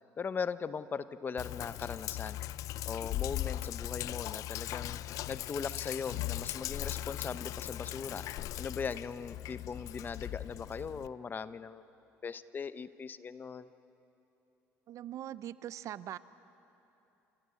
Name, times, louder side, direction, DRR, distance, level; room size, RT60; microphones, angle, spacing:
voice 1, 0.2-2.4 2.9-5.0 5.3-8.2 8.6-11.8 12.2-13.7, left 6 dB, 35° left, 14 dB, 0.7 m, -39 dB
Sink (filling or washing), 1.4-11.1, left 14 dB, 65° left, 0.4 m, -39 dB
voice 2, 14.9-16.2, right 12 dB, 60° right, 16 dB, 0.6 m, -41 dB
28.5 x 14.5 x 8.4 m, 3.0 s
supercardioid pair, 90°, 6 cm